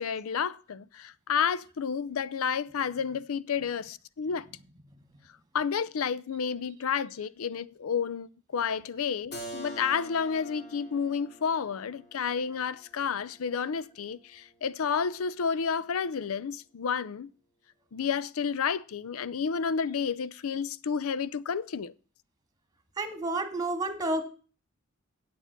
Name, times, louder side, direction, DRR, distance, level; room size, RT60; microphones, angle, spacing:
voice 1, 0.0-4.5 5.5-17.3 17.9-21.9, left 6 dB, 80° left, 0.5 m, -31 dB
Keyboard (musical), 9.3-14.9, equal, 50° left, 2.5 m, -46 dB
voice 2, 23.0-24.2, right 2 dB, 20° right, 1.8 m, -30 dB
8.6 x 8.2 x 5.8 m
head